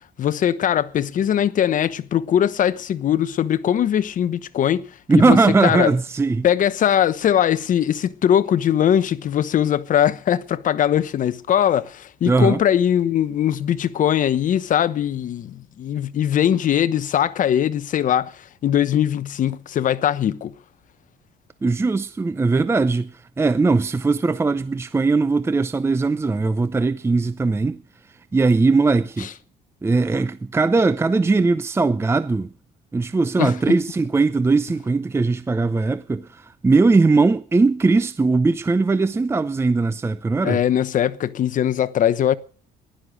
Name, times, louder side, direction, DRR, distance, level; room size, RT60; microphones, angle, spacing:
voice 1, 0.2-4.9 5.1-5.9 6.4-20.5 29.2-29.3 33.4-33.5 40.4-42.4, left 10 dB, 50° left, 1.0 m, -20 dB
voice 2, 5.1-6.5 12.3-12.6 21.6-27.8 28.3-29.3 29.8-32.5 32.9-40.6, right 3 dB, 15° right, 0.6 m, -19 dB
15.5 x 11.5 x 6.4 m
cardioid pair, 110°, 17 cm